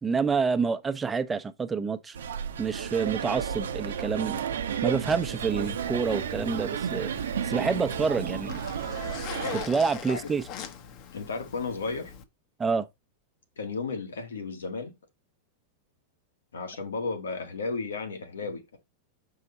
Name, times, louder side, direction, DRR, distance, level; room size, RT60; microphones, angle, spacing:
voice 1, 0.0-2.2 2.6-4.4 4.8-7.1 7.4-8.6 9.5-10.4 12.6-12.9, right 5 dB, 15° right, 0.9 m, -28 dB
Rahova ambience, 2.1-9.7, right 8 dB, 80° right, 0.8 m, -32 dB
Zipper (clothing), 5.4-12.2, left 7 dB, 45° left, 1.1 m, -42 dB
voice 2, 11.1-12.1 13.6-14.9 16.5-18.8, left 4 dB, 85° left, 1.7 m, -34 dB
6.6 x 4.9 x 4.1 m
hypercardioid pair, 105°, 0 cm